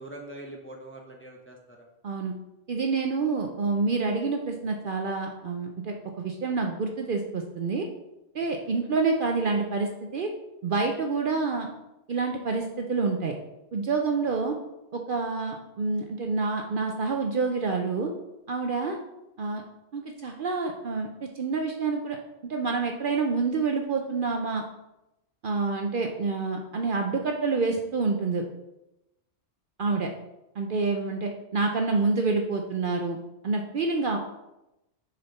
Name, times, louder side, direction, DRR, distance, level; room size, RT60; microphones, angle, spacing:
voice 1, 0.0-1.9 8.6-8.8, right 1 dB, 15° left, 0 dB, 0.6 m, -43 dB
voice 2, 2.0-2.3 2.7-7.9 8.3-10.3 10.6-11.7 12.1-13.4 13.7-14.6 14.9-18.1 18.5-19.0 19.4-19.6 19.9-22.2 22.4-24.6 25.4-28.4 29.8-30.1 30.6-33.2 33.4-34.2, right 4 dB, 55° right, 2 dB, 0.7 m, -27 dB
6.6 x 4.2 x 4.0 m, 0.92 s
omnidirectional pair, 1.2 m